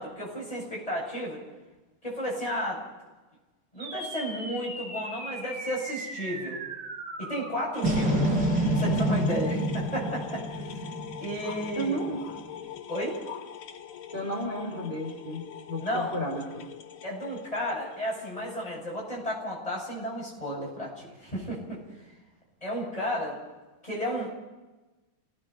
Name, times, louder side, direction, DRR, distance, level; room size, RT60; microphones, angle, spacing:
voice 1, 0.0-1.4 2.0-2.8 3.7-6.6 7.2-8.4 8.7-10.9 11.2-12.0 12.9-13.1 15.8-16.1 17.0-21.8 22.6-23.4 23.8-24.3, equal, 15° left, -4 dB, 8.2 m, -33 dB
sound 1, 3.8-12.4, right 1 dB, 55° right, 4.9 m, -30 dB
sound 2, 7.7-18.8, left 9 dB, 85° left, 2.5 m, -43 dB
voice 2, 11.8-12.2 14.1-16.7, right 1 dB, 25° right, -2 dB, 4.0 m, -33 dB
29.5 x 18.5 x 5.0 m, 1.1 s
omnidirectional pair, 2.4 m